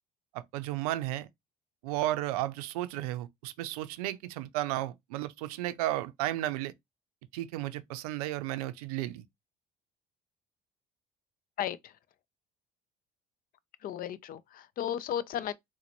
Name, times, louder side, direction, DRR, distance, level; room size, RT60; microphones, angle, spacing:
voice 1, 0.3-1.3 1.8-6.7 7.3-9.2, right 15 dB, 90° right, 0.4 m, -33 dB
voice 2, 11.6-11.9 13.8-15.5, left 10 dB, 50° left, 0.4 m, -34 dB
3.9 x 2.1 x 2.9 m
supercardioid pair, 75°, 18 cm